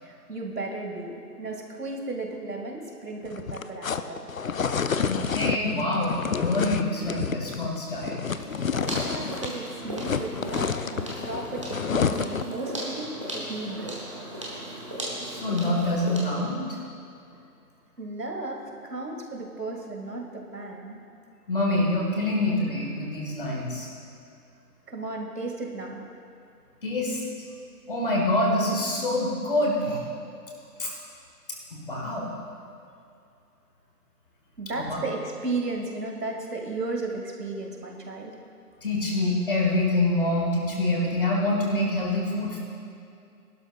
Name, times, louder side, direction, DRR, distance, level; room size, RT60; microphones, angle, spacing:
voice 1, 0.0-4.3 8.9-14.0 18.0-21.0 24.9-26.1 34.6-38.4, right 2 dB, 75° right, 1 dB, 2.2 m, -34 dB
sound 1, 3.3-9.6 9.8-12.6, left 6 dB, 60° left, 0.5 m, -29 dB
voice 2, 5.0-8.2 15.2-16.6 21.5-23.9 26.8-27.2 27.9-30.0 30.8-30.9 31.7-32.4 34.8-35.0 38.8-42.6, left 1 dB, 35° left, -2 dB, 1.7 m, -26 dB
sound 2, 8.3-16.5, right 1 dB, 20° right, 1.0 m, -37 dB
18.5 x 12.0 x 2.4 m, 2.6 s
figure-of-eight pair, 160°, 49 cm